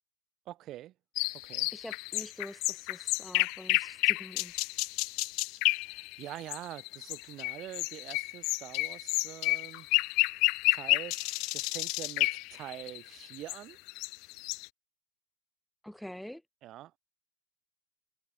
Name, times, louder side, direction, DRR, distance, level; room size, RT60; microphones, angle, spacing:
voice 1, 0.5-0.9 1.4-1.7 5.8-9.9 10.7-11.2 11.5-13.8 16.6-17.0, right 14 dB, 35° right, 4.4 m, -45 dB
sound 1, 1.2-14.7, left 26 dB, 40° left, 0.7 m, -31 dB
voice 2, 1.7-4.6 15.8-16.4, equal, ahead, 2.8 m, -45 dB
figure-of-eight pair, 90°, 0 cm